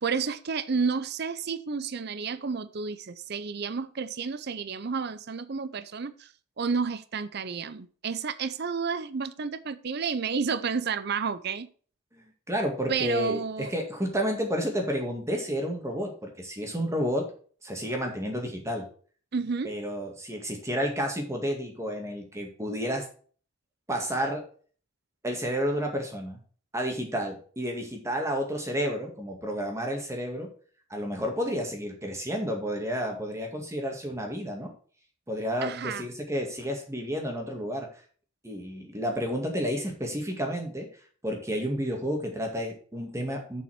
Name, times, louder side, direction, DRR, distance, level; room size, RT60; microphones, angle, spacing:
voice 1, 0.0-6.3 6.6-11.7 12.9-13.7 19.3-19.7 35.6-36.0, right 5 dB, 50° right, 0.6 m, -31 dB
voice 2, 12.1-17.2 17.6-18.8 19.6-23.1 23.9-24.4 25.2-26.4 26.7-30.5 30.9-34.7 35.3-37.9 38.4-40.9 41.2-43.6, equal, 15° right, 2.0 m, -31 dB
7.3 x 5.7 x 5.9 m
head